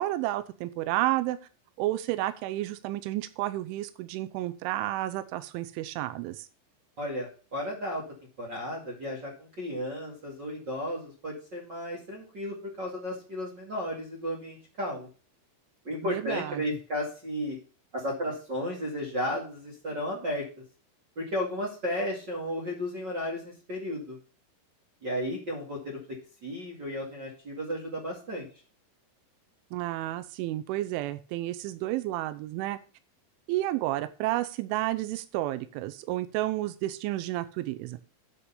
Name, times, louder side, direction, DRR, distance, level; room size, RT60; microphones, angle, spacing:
voice 1, 0.0-1.4 1.8-6.5 16.0-16.6 29.7-32.8 33.5-38.0, right 15 dB, 85° right, 12 dB, 3.1 m, -31 dB
voice 2, 7.0-8.0 8.4-15.1 15.8-17.6 17.9-20.4 21.2-24.2 25.0-26.0 26.4-28.5, left 1 dB, 40° right, -4 dB, 1.7 m, -34 dB
9.6 x 5.9 x 5.6 m, 0.36 s
omnidirectional pair, 5.5 m